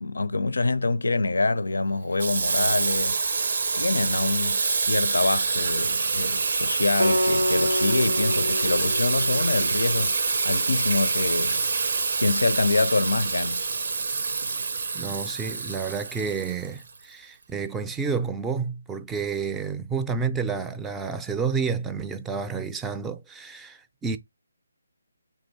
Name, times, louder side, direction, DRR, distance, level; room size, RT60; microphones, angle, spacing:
voice 1, 0.0-10.1 10.4-11.6 12.2-13.6, left 3 dB, 80° left, 0.4 m, -26 dB
Water tap faucet / Sink (filling or washing), 2.2-17.0, right 4 dB, 60° right, 0.5 m, -26 dB
Acoustic guitar, 7.0-10.2, left 1 dB, 80° right, 0.8 m, -28 dB
voice 2, 14.9-24.2, right 5 dB, 10° right, 0.4 m, -30 dB
3.7 x 3.0 x 4.0 m
figure-of-eight pair, 155°, 0 cm